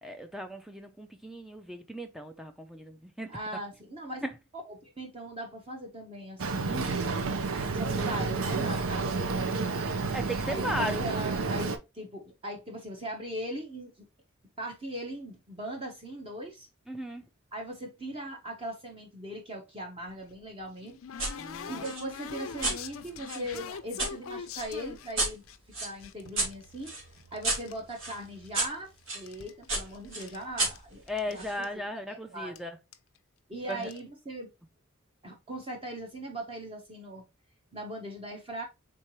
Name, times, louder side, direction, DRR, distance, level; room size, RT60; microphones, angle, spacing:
voice 1, 0.0-3.4 4.2-4.3 10.1-11.0 16.9-17.2 21.4-21.8 31.1-32.8 33.7-33.9, equal, ahead, 0.4 m, -36 dB
voice 2, 3.3-4.2 4.7-6.9 7.7-9.9 10.4-14.0 14.6-16.7 17.5-21.0 21.6-25.4 25.8-26.9 27.3-31.8 32.1-32.6 33.5-34.5 35.2-37.2 37.7-38.6, right 1 dB, 25° right, 0.9 m, -39 dB
Boat Water vehicle, 6.4-11.8, right 4 dB, 80° right, 0.6 m, -30 dB
sound 1, 20.1-25.6 26.0-27.8 28.1-28.8 29.1-30.4 30.7-30.8 31.1-31.3 31.6-31.7 32.6-32.7 32.9-33.2 33.7-34.0, left 7 dB, 75° left, 0.5 m, -43 dB
sound 2, 21.2-21.4 21.8-24.1 24.6-29.2 29.7-31.6, right 2 dB, 60° right, 2.0 m, -34 dB
4.4 x 3.7 x 3.0 m
head